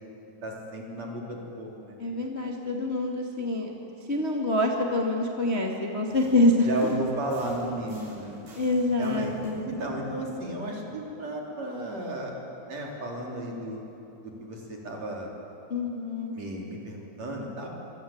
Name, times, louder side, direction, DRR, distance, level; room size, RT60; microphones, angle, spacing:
voice 1, 0.4-2.0 6.7-8.4 9.0-9.4 9.7-12.3 12.7-13.8 14.2-15.3 16.3-17.7, right 1 dB, 35° right, -1 dB, 4.4 m, -34 dB
voice 2, 2.0-3.7 4.1-6.9 8.5-9.6 15.7-16.3, left 1 dB, 85° left, 0 dB, 0.5 m, -26 dB
sound 1, 6.1-11.2, right 1 dB, 70° right, 9.7 m, -47 dB
26.0 x 25.0 x 8.7 m, 3.0 s
omnidirectional pair, 5.4 m